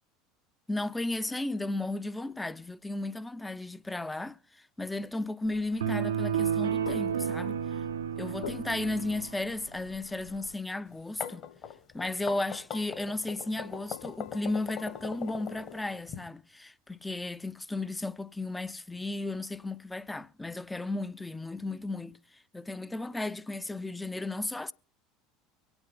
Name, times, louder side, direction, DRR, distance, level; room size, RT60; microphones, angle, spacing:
voice 1, 0.7-7.8 8.2-11.5 11.9-24.7, left 2 dB, 10° left, 0.5 m, -34 dB
sound 1, 5.4-10.5, left 8 dB, 75° left, 0.5 m, -47 dB
sound 2, 5.8-9.4, right 8 dB, 75° right, 0.6 m, -31 dB
sound 3, 10.9-16.2, left 8 dB, 50° left, 1.8 m, -40 dB
23.5 x 8.9 x 3.7 m
figure-of-eight pair, 75°, 0 cm